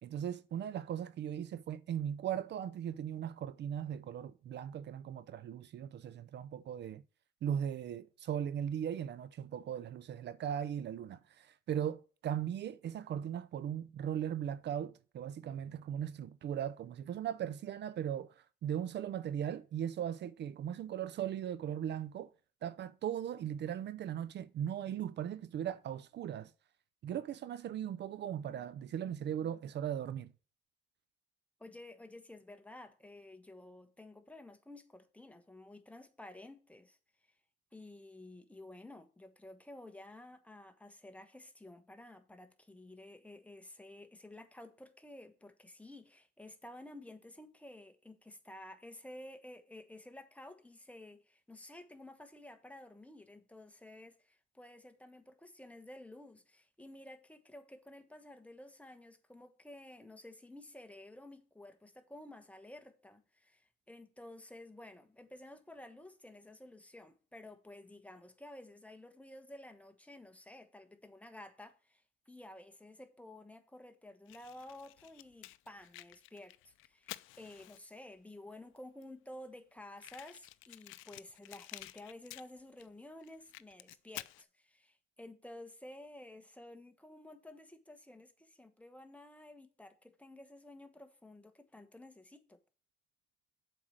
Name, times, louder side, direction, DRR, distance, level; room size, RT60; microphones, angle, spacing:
voice 1, 0.0-7.0 7.4-22.3 22.6-26.5 27.0-30.3, right 9 dB, 60° right, 0.5 m, -38 dB
voice 2, 31.6-37.0 37.7-92.6, left 1 dB, 5° left, 1.2 m, -52 dB
Fire, 74.3-78.1 78.8-78.9 79.0-79.1 79.3-79.4 80.0-82.9 83.2-84.4, left 17 dB, 90° left, 0.4 m, -51 dB
7.4 x 4.6 x 6.4 m
cardioid pair, 90°, 20 cm